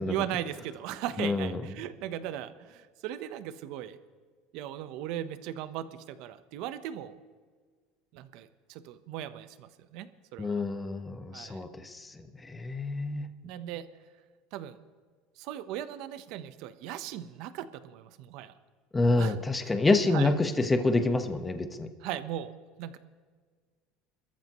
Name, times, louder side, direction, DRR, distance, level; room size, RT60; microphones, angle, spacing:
voice 1, 0.0-4.0 4.5-7.2 8.1-10.6 11.3-11.6 13.4-13.9 14.5-14.8 15.4-18.5 19.2-19.4 20.1-20.3 22.0-23.0, right 11 dB, 65° right, 11 dB, 1.0 m, -38 dB
voice 2, 1.2-1.6 10.4-13.3 18.9-21.9, left 2 dB, 15° left, 7 dB, 1.2 m, -27 dB
27.0 x 14.0 x 3.1 m, 1.5 s
supercardioid pair, 125°, 0 cm